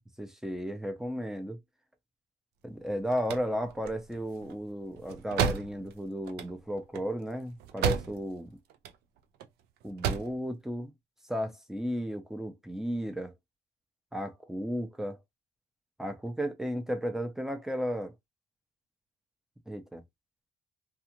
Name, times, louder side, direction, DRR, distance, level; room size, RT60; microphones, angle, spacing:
voice 1, 0.2-1.6 2.6-8.5 9.8-10.9 11.3-13.3 14.1-15.2 16.0-18.1 19.7-20.0, equal, 5° right, 0.5 m, -34 dB
Car Door-open-close, 2.8-8.4 8.7-9.5 9.8-10.4, right 7 dB, 70° right, 0.4 m, -33 dB
2.4 x 2.3 x 2.9 m
cardioid pair, 110°, 17 cm